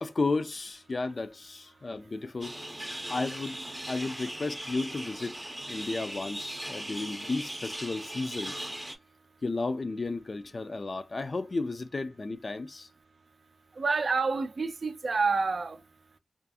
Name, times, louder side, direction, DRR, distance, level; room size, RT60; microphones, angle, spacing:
voice 1, 0.0-2.6 3.1-3.6 3.9-8.7 9.4-12.9, left 3 dB, 50° left, 0.3 m, -33 dB
sound 1, 2.4-9.0, right 1 dB, 10° right, 0.5 m, -39 dB
voice 2, 13.8-15.8, right 4 dB, 65° right, 0.3 m, -28 dB
2.4 x 2.3 x 2.6 m
wide cardioid pair, 100°, 0 cm